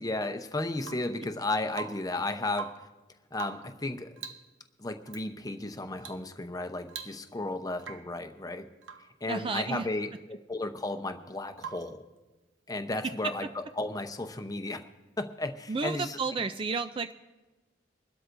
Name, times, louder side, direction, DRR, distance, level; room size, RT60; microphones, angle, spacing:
voice 1, 0.0-2.7 3.3-4.2 4.8-8.7 9.2-12.0 12.7-14.8 15.2-16.2, left 2 dB, 20° left, 6 dB, 0.8 m, -34 dB
Rain / Water tap faucet / Drip, 0.8-1.2 1.7-2.2 2.5-2.9 3.3-3.8 4.2-4.5 5.1-5.3 6.0-6.3 6.5-6.6 6.9-7.5 7.8-8.2 8.8-9.2 11.6-12.0 13.9-14.0, right 7 dB, 80° right, 0.9 m, -43 dB
voice 2, 9.3-9.9 15.7-17.1, right 4 dB, 25° right, 9 dB, 0.3 m, -32 dB
24.5 x 12.5 x 2.6 m, 1.2 s
head